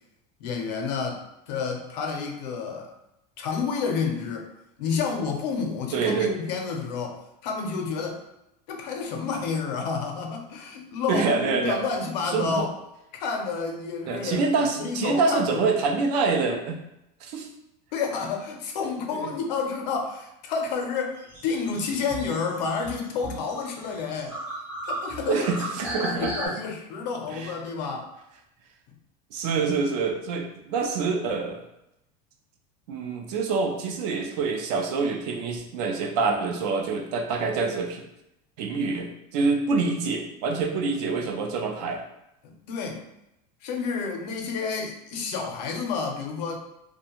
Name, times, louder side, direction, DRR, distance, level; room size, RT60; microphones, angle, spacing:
voice 1, 0.4-2.9 3.4-4.5 4.8-8.2 8.7-12.7 13.1-14.5 14.8-15.6 17.9-24.4 24.8-25.5 25.8-28.1 42.4-43.0 43.6-46.6, left 5 dB, 90° left, 2 dB, 0.6 m, -30 dB
voice 2, 5.9-6.3 11.1-11.8 12.3-12.7 14.1-16.8 17.3-17.5 19.1-19.3 25.3-26.3 27.3-27.5 29.3-31.6 32.9-38.0 38.6-42.0, right 4 dB, 75° right, 4 dB, 0.6 m, -26 dB
sound 1, 21.2-26.5, right 1 dB, 10° right, 0.4 m, -35 dB
2.5 x 2.2 x 2.9 m, 0.85 s
supercardioid pair, 160°, 21 cm